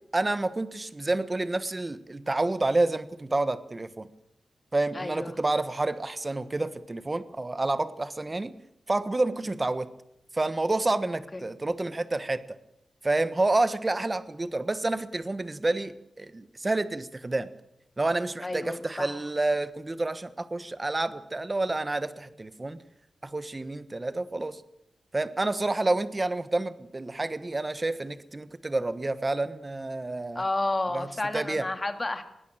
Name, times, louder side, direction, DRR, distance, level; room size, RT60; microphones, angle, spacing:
voice 1, 0.1-4.1 4.7-8.5 8.9-9.9 10.3-12.4 13.0-17.5 18.0-22.8 23.2-24.6 25.1-30.4 30.9-31.1 31.3-31.6, right 2 dB, 25° right, 13 dB, 1.2 m, -29 dB
voice 2, 4.9-5.4 11.3-11.4 18.4-19.2 30.3-32.2, left 2 dB, 25° left, 8 dB, 2.2 m, -31 dB
20.0 x 17.0 x 8.9 m, 0.81 s
wide cardioid pair, 140°, 0 cm